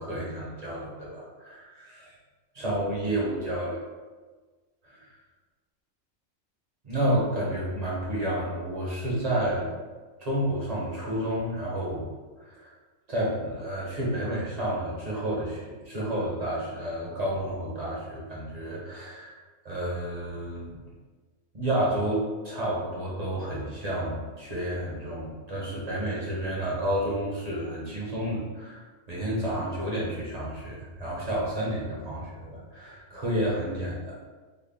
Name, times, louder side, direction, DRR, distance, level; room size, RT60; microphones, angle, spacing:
voice 1, 0.0-2.1 2.5-3.9 4.8-5.1 6.8-9.7 10.2-12.1 12.4-12.7 13.1-19.3 19.6-20.8 21.5-28.8 29.1-34.1, right 1 dB, 40° right, -5 dB, 0.7 m, -30 dB
3.7 x 2.1 x 3.4 m, 1.4 s
omnidirectional pair, 1.4 m